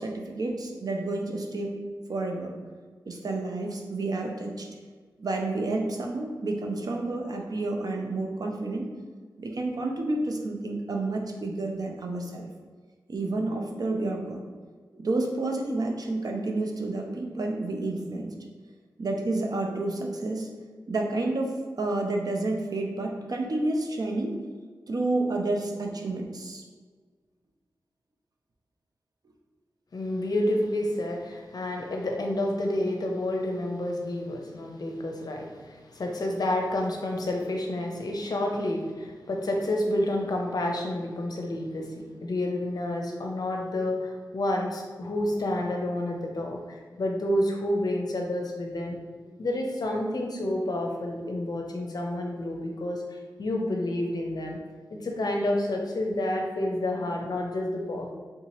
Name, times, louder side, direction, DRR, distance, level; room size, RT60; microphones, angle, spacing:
voice 1, 0.0-1.8 2.1-2.5 3.1-4.7 5.2-8.9 9.4-12.5 13.1-14.4 14.9-18.3 19.0-20.5 20.9-24.4 24.9-26.6, right 2 dB, 55° right, 1 dB, 0.5 m, -30 dB
voice 2, 29.9-49.0 49.4-54.6 54.9-58.1, left 1 dB, 60° left, 1 dB, 0.6 m, -29 dB
3.5 x 2.9 x 2.9 m, 1.5 s
wide cardioid pair, 85°, 8 cm